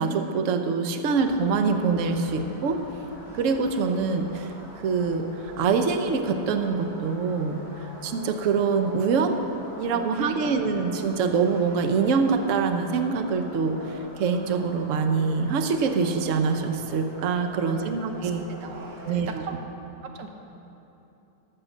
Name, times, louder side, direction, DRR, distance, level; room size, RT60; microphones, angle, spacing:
voice 1, 0.0-2.8 3.3-4.5 4.8-7.6 8.0-9.4 9.8-18.4 19.1-19.3, right 5 dB, 60° right, 7 dB, 0.9 m, -24 dB
sound 1, 1.1-19.2, equal, 35° right, 2.2 m, -44 dB
voice 2, 9.9-10.8 11.1-11.2 17.5-17.8 18.1-19.6 20.0-20.3, right 5 dB, 85° right, 4 dB, 1.6 m, -38 dB
13.5 x 6.7 x 6.5 m, 3.0 s
omnidirectional pair, 1.9 m